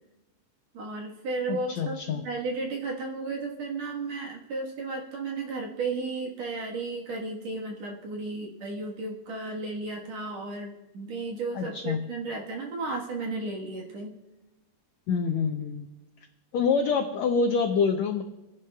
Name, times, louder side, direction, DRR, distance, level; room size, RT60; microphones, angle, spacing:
voice 1, 0.7-14.1, right 3 dB, 60° right, -1 dB, 2.3 m, -34 dB
voice 2, 1.5-2.2 11.5-12.0 15.1-15.9 16.5-18.2, left 5 dB, 85° left, 5 dB, 1.5 m, -26 dB
28.5 x 10.5 x 2.3 m, 1.0 s
omnidirectional pair, 4.1 m